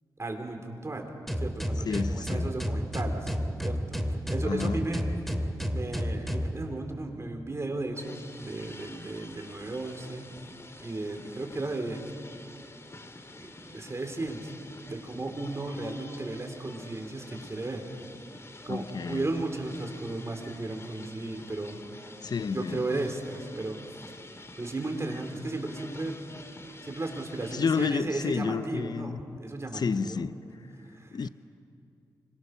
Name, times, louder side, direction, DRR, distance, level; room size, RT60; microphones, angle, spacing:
voice 1, 0.2-1.1 1.4-3.3 3.6-5.0 5.7-10.3 10.8-12.1 13.4-14.5 14.9-17.8 18.6-21.8 22.5-23.8 24.0-24.1 24.6-26.2 26.8-30.3 30.9-31.2, right 2 dB, 35° right, 4.0 m, -35 dB
sound 1, 1.3-6.5, equal, ahead, 2.3 m, -30 dB
voice 2, 1.9-2.5 4.4-4.8 18.7-19.3 22.2-23.1 27.5-29.4 29.7-30.4 31.1-31.3, left 5 dB, 55° left, 0.7 m, -30 dB
sound 2, 8.0-27.9, left 2 dB, 35° left, 1.9 m, -48 dB
25.5 x 22.5 x 6.8 m
cardioid pair, 50°, 8 cm